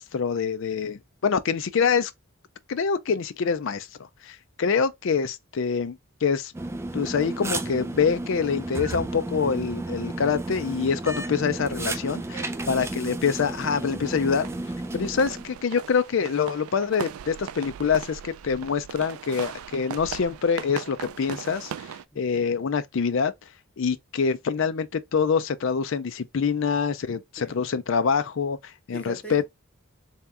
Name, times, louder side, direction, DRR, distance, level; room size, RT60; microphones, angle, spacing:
voice 1, 0.0-2.1 2.7-3.9 4.2-6.5 6.9-12.2 12.7-14.5 14.9-21.9 22.2-23.3 23.8-29.5, left 6 dB, 65° left, 0.4 m, -25 dB
sound 1, 6.5-15.6, right 2 dB, 10° right, 0.3 m, -33 dB
voice 2, 12.1-12.8 15.3-15.5 22.1-22.5 27.4-27.6 28.9-29.4, right 2 dB, 5° left, 1.4 m, -43 dB
sound 2, 14.1-22.0, right 8 dB, 90° right, 0.4 m, -39 dB
3.5 x 2.8 x 3.3 m
head